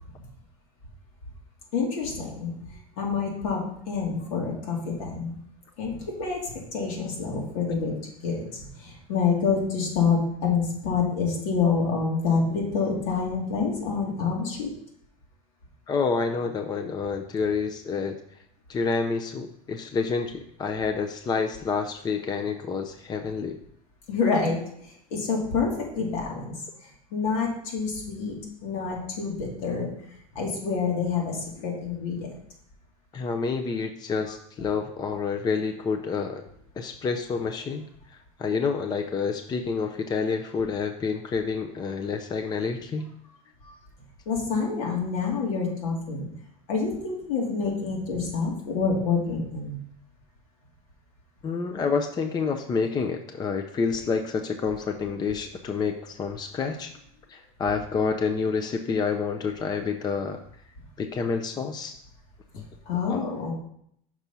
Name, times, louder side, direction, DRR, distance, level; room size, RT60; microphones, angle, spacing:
voice 1, 1.7-2.5 3.0-3.6 3.9-5.3 5.8-7.9 8.2-14.7 24.1-26.5 27.1-28.4 28.6-29.9 30.3-32.3 43.7-43.8 44.3-46.3 46.7-49.8 62.5-63.5, left 5 dB, 75° left, -1 dB, 2.4 m, -27 dB
voice 2, 15.9-18.2 18.7-23.6 33.1-36.4 36.8-37.8 38.4-43.1 51.4-56.9 57.3-60.4 61.0-61.9 62.6-62.7 63.0-63.3, left 5 dB, 20° left, 6 dB, 0.5 m, -28 dB
6.0 x 4.3 x 5.4 m, 0.70 s
supercardioid pair, 115°, 19 cm